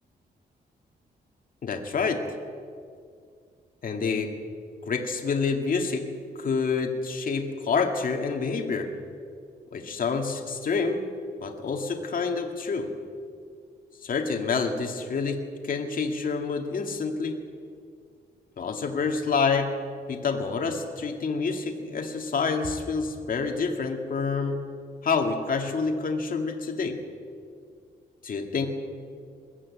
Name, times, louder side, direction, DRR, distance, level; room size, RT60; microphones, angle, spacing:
voice 1, 1.6-2.3 3.8-4.4 4.9-6.1 6.4-8.9 9.7-11.1 11.4-12.9 14.0-17.4 18.6-19.8 20.1-24.6 25.0-27.0 28.2-28.7, left 4 dB, 55° left, 3 dB, 2.1 m, -28 dB
22.0 x 14.0 x 8.6 m, 2.3 s
wide cardioid pair, 130°, 18 cm